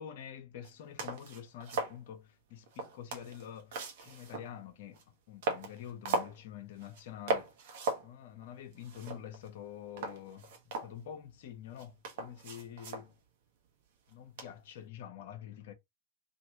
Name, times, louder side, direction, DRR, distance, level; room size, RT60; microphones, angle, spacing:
voice 1, 0.0-7.5 8.0-13.1 14.1-15.7, left 9 dB, 60° left, 0.8 m, -47 dB
sound 1, 0.6-0.7 1.0-2.0 2.7-4.5 4.9-5.0 5.4-6.4 6.8-7.0 7.3-8.1 8.4-8.5 8.7-9.6 10.0-11.3 11.8-13.1 14.4-14.7, right 3 dB, 60° right, 1.0 m, -37 dB
3.4 x 2.5 x 2.8 m
figure-of-eight pair, 95°, 0 cm